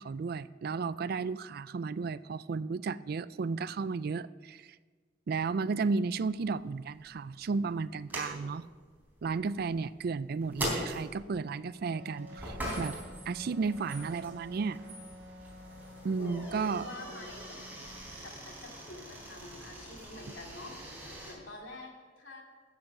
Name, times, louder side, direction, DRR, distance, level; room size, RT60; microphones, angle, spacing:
voice 1, 0.0-4.7 5.3-8.7 9.2-13.0 13.3-14.8 16.0-16.9, right 4 dB, 55° right, 17 dB, 0.4 m, -33 dB
sound 1, 6.1-21.3, right 1 dB, 10° right, 3.8 m, -43 dB
Wind instrument woodwind instrument, 11.9-18.3, left 1 dB, 85° right, 1.0 m, -51 dB
voice 2, 16.2-17.4 18.2-20.7 21.2-22.4, left 2 dB, 85° left, 0 dB, 2.4 m, -46 dB
13.5 x 7.8 x 6.0 m, 1.5 s
head